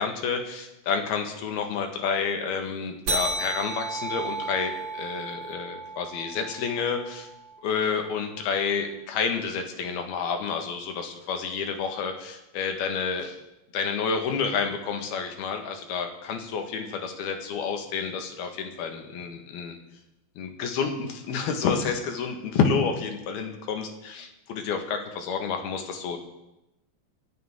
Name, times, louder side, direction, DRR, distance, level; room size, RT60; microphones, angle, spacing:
voice 1, 0.0-7.3 7.6-13.3 13.7-19.8 20.4-26.2, left 6 dB, 75° left, 5 dB, 3.5 m, -29 dB
sound 1, 3.1-8.0, right 3 dB, 35° right, 2.6 m, -34 dB
27.0 x 10.5 x 3.7 m, 0.92 s
omnidirectional pair, 4.5 m